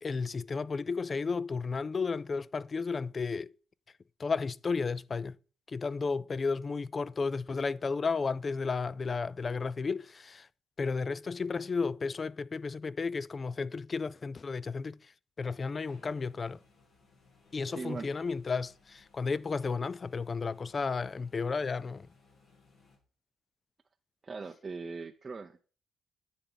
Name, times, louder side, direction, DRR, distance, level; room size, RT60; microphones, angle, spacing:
voice 1, 0.0-3.5 4.2-5.3 5.7-10.5 10.8-15.1 15.4-16.6 17.5-22.1, left 4 dB, 30° left, 0.3 m, -33 dB
sound 1, 15.9-23.0, left 4 dB, 70° left, 2.9 m, -64 dB
voice 2, 17.7-18.1 24.2-25.6, right 4 dB, 30° right, 0.5 m, -40 dB
10.5 x 7.1 x 3.9 m
cardioid pair, 120°, 0 cm